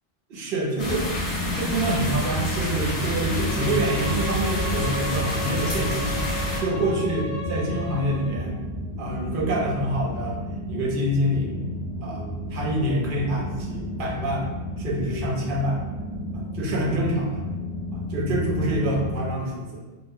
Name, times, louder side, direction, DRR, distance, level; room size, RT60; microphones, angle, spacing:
voice 1, 0.3-1.1 1.4-6.2 6.6-8.6 9.0-10.4 10.7-11.5 12.0-14.5 14.8-15.8 16.3-17.4 17.9-19.8, right 1 dB, 60° right, -3 dB, 0.8 m, -26 dB
sound 1, 0.8-6.6, left 1 dB, 45° left, 0.8 m, -29 dB
sound 2, 0.8-19.3, equal, 5° right, 0.5 m, -32 dB
Bowed string instrument, 3.2-8.4, left 1 dB, 80° left, 0.9 m, -35 dB
2.3 x 2.1 x 3.5 m, 1.2 s
omnidirectional pair, 1.1 m